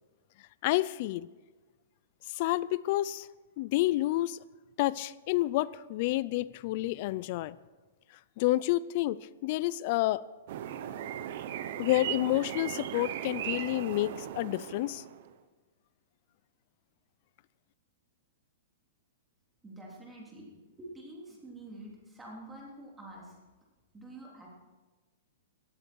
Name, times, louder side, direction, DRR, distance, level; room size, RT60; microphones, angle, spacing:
voice 1, 0.6-1.3 2.3-3.3 3.6-4.4 4.8-7.6 8.4-10.2 11.8-15.0, left 17 dB, 40° left, 20 dB, 0.4 m, -29 dB
sound 1, 10.5-15.3, right 11 dB, 50° right, 0.9 m, -38 dB
voice 2, 19.6-20.5 20.8-23.4 23.9-24.6, right 1 dB, 10° right, -3 dB, 3.3 m, -47 dB
18.0 x 13.5 x 4.6 m, 1.3 s
hypercardioid pair, 165°, 0 cm